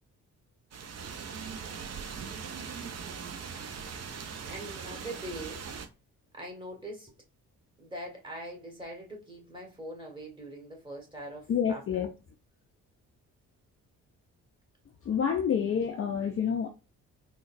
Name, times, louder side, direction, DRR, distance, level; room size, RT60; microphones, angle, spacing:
sound 1, 0.7-5.9, right 6 dB, 35° right, 0.6 m, -40 dB
voice 1, 4.5-5.7 6.3-7.1 7.8-12.0, right 1 dB, 10° right, 1.5 m, -42 dB
voice 2, 11.5-12.1 15.0-16.7, left 7 dB, 30° left, 0.5 m, -28 dB
3.7 x 2.2 x 2.5 m
figure-of-eight pair, 40°, 45 cm